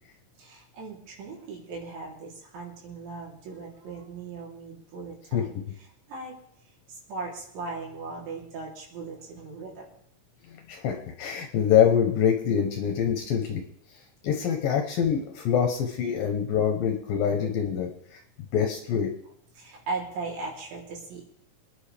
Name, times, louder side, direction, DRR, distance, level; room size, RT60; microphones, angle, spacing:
voice 1, 0.4-5.6 6.1-6.4 6.9-9.8 19.6-21.2, right 3 dB, 80° right, -3 dB, 5.7 m, -38 dB
voice 2, 10.7-13.6 14.2-17.9 18.5-19.1, left 8 dB, 70° left, 3 dB, 2.3 m, -25 dB
26.0 x 10.0 x 3.4 m, 0.69 s
omnidirectional pair, 5.1 m